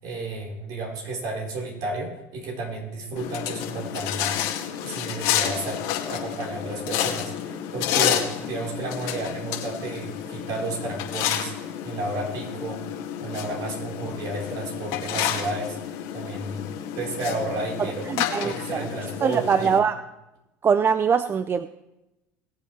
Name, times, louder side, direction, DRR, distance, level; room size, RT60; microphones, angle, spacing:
voice 1, 0.0-4.4 4.8-12.8 13.2-15.8 16.1-16.7 16.9-18.0 18.4-19.7, right 2 dB, 60° right, -2 dB, 4.5 m, -32 dB
sound 1, 3.2-19.8, left 10 dB, 70° left, 2.0 m, -30 dB
voice 2, 17.8-18.9 19.2-20.0 20.6-21.7, right 6 dB, 30° right, 13 dB, 0.5 m, -23 dB
21.5 x 7.9 x 3.4 m, 0.96 s
hypercardioid pair, 85°, 7 cm